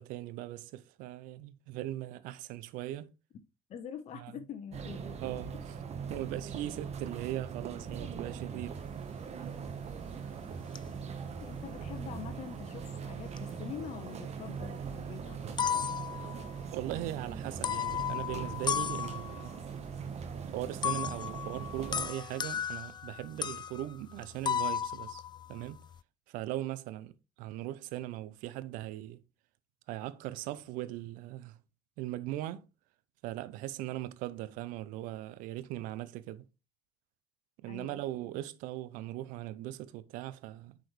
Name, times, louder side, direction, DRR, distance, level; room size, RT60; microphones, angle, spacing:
voice 1, 0.0-3.1 4.1-4.3 5.2-5.6 6.1-8.8 16.7-19.6 20.5-25.2 25.5-25.8 26.3-27.1 27.4-29.2 29.9-31.6 32.0-32.6 33.2-36.4 37.6-40.8, right 14 dB, 70° right, 0.6 m, -39 dB
voice 2, 3.7-5.2 11.4-15.6 37.7-38.0, left 8 dB, 55° left, 1.0 m, -45 dB
sound 1, 4.7-22.1, right 6 dB, 50° right, 1.2 m, -41 dB
sound 2, 9.7-10.2 10.7-12.2 13.1-14.3 14.6-14.7 15.3-16.9 17.5-19.6 20.8-26.0, left 8 dB, 30° left, 0.4 m, -35 dB
9.0 x 5.0 x 3.2 m
hypercardioid pair, 50°, 14 cm